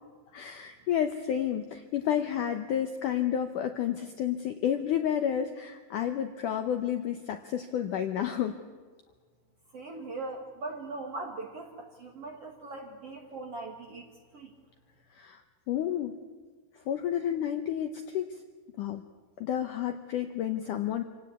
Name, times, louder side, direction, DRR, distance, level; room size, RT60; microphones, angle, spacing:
voice 1, 0.3-8.6 15.2-15.4 15.7-16.2 16.9-18.3 18.8-19.0 19.4-21.0, left 10 dB, 75° left, 7 dB, 1.9 m, -30 dB
voice 2, 9.7-14.1 14.3-14.5, right 2 dB, 50° right, 3 dB, 1.9 m, -40 dB
26.5 x 17.5 x 8.4 m, 1.5 s
omnidirectional pair, 4.8 m